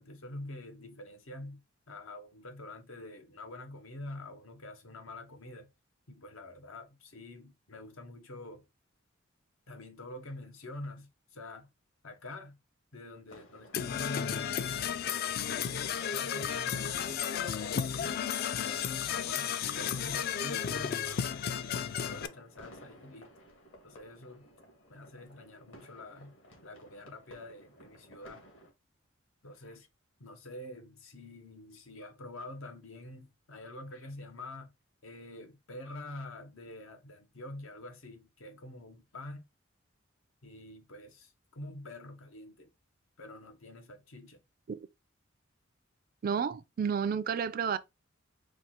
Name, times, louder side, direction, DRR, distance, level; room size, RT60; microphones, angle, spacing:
voice 1, 0.0-5.7 6.1-8.7 9.7-11.7 12.0-12.6 12.9-15.4 15.7-18.3 18.6-23.3 23.8-24.5 24.9-26.4 26.6-28.4 29.4-29.9 30.2-34.7 35.0-39.4 40.4-42.7 43.2-44.4, left 2 dB, 85° left, 1.0 m, -46 dB
sound 1, 13.3-28.7, equal, 65° left, 1.6 m, -55 dB
Percussion / Brass instrument, 13.7-22.3, left 8 dB, 50° left, 0.3 m, -33 dB
voice 2, 46.2-47.8, right 6 dB, 45° right, 0.3 m, -31 dB
4.5 x 2.4 x 4.2 m
head